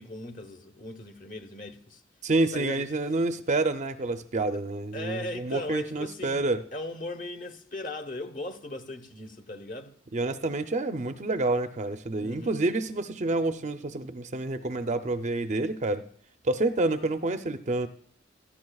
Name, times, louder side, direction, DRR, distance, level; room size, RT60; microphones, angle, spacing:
voice 1, 0.0-2.0 2.5-2.8 3.2-3.4 4.9-6.4 6.7-9.9 12.2-12.6, left 1 dB, 45° left, 1.1 m, -38 dB
voice 2, 2.2-6.6 10.1-16.0 16.4-17.9, right 2 dB, 35° right, 0.6 m, -28 dB
17.5 x 13.5 x 2.3 m
head